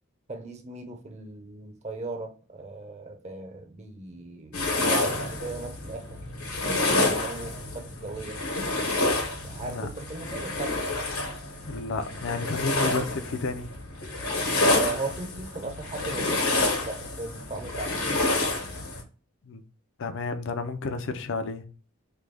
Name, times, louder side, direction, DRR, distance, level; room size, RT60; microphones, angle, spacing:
voice 1, 0.3-6.0 7.0-8.4 9.4-10.7 14.6-18.1, right 3 dB, 30° right, 0.7 m, -37 dB
sound 1, 4.5-19.0, left 2 dB, 80° left, 1.2 m, -28 dB
voice 2, 11.7-13.7 19.5-19.6 20.0-21.6, left 3 dB, 60° left, 0.5 m, -31 dB
3.3 x 2.2 x 3.3 m
head